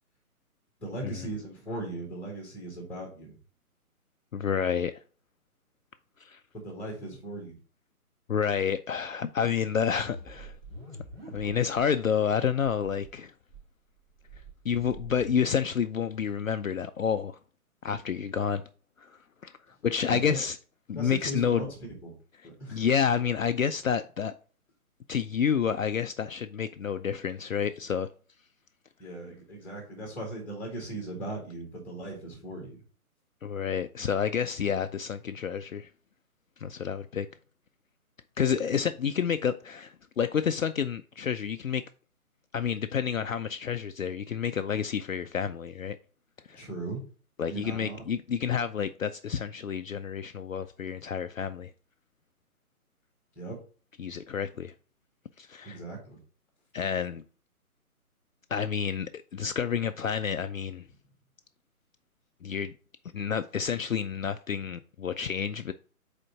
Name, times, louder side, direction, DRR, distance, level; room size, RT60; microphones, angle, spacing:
voice 1, 0.8-3.4 6.5-7.6 20.1-20.4 21.0-21.7 22.0-22.2 22.4-22.9 29.0-32.8 46.5-47.0 47.5-48.0 53.4-53.6 55.6-56.2, right 2 dB, 5° left, 1.9 m, -38 dB
voice 2, 4.3-5.0 6.2-6.4 8.3-10.5 11.3-13.3 14.6-17.4 17.8-18.6 19.0-19.1 19.4-19.5 19.8-20.6 20.9-21.7 22.7-24.3 25.1-28.1 33.4-35.9 36.6-37.3 38.4-41.8 42.5-46.0 46.5-46.6 47.4-51.7 54.0-54.7 55.4-55.8 56.7-57.2 58.5-60.8 62.4-62.7 63.1-65.7, left 7 dB, 60° left, 0.5 m, -29 dB
sound 1, 10.0-11.9 12.2-12.3 12.6-13.1 13.5-15.6, right 1 dB, 40° right, 2.2 m, -45 dB
5.0 x 4.4 x 4.6 m
figure-of-eight pair, 140°, 45 cm